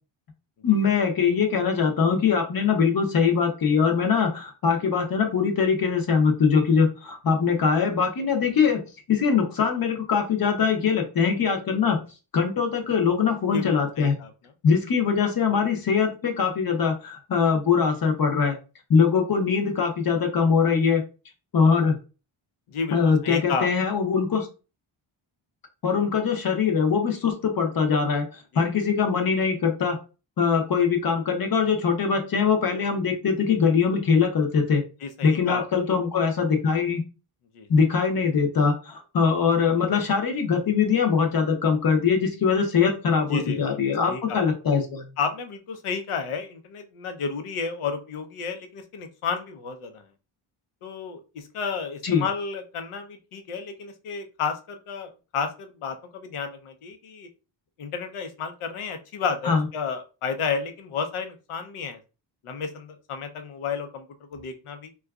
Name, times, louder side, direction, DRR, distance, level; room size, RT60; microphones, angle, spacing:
voice 1, 0.6-8.8 9.1-12.0 12.3-14.2 14.6-18.6 18.9-21.0 21.5-21.9 22.9-24.5 25.8-30.0 30.4-34.8 35.2-37.0 37.7-45.0 52.0-52.2 59.4-59.6, left 6 dB, 45° left, 4 dB, 0.7 m, -22 dB
voice 2, 13.5-14.3 22.7-23.7 28.5-28.6 35.0-35.6 37.5-37.7 43.3-43.6 44.0-44.4 45.2-50.0 50.8-57.3 57.8-62.0 62.4-64.1 64.3-64.9, left 5 dB, 85° left, 7 dB, 0.7 m, -32 dB
3.8 x 2.3 x 2.3 m, 0.32 s
wide cardioid pair, 165°, 49 cm